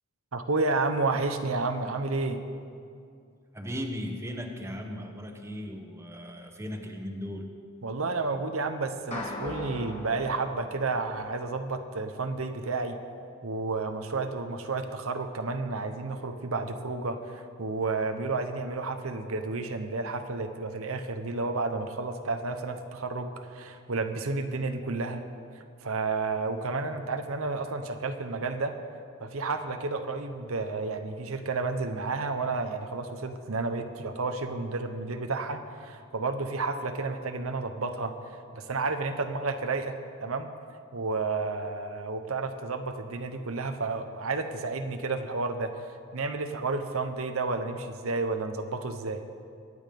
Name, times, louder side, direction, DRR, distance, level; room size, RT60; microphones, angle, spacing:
voice 1, 0.3-2.4 7.8-13.0 13.4-25.2 25.5-28.7 29.2-40.5 40.9-49.2, right 3 dB, 65° right, 7 dB, 0.9 m, -31 dB
voice 2, 3.5-7.5, equal, 10° right, 4 dB, 1.1 m, -37 dB
sound 1, 9.1-11.6, left 1 dB, 30° left, 2.2 m, -39 dB
23.0 x 9.6 x 5.3 m, 2.4 s
head